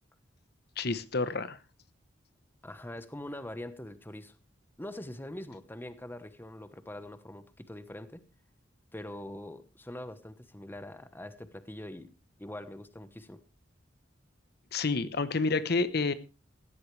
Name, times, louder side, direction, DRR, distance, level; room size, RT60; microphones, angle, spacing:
voice 1, 0.8-1.6 14.7-16.1, left 3 dB, 60° left, 0.9 m, -29 dB
voice 2, 2.6-4.3 4.8-8.2 8.9-12.1 12.4-13.4, left 1 dB, 10° left, 1.0 m, -43 dB
17.0 x 13.0 x 3.3 m
head